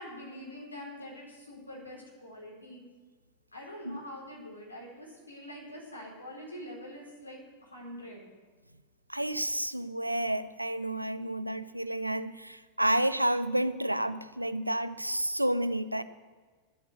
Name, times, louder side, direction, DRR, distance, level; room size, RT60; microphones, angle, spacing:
voice 1, 0.0-2.8 3.5-8.3, left 1 dB, 80° left, -3 dB, 4.4 m, -45 dB
voice 2, 9.1-16.0, right 1 dB, 85° right, 13 dB, 0.5 m, -30 dB
11.5 x 8.4 x 8.1 m, 1.5 s
figure-of-eight pair, 90°, 0 cm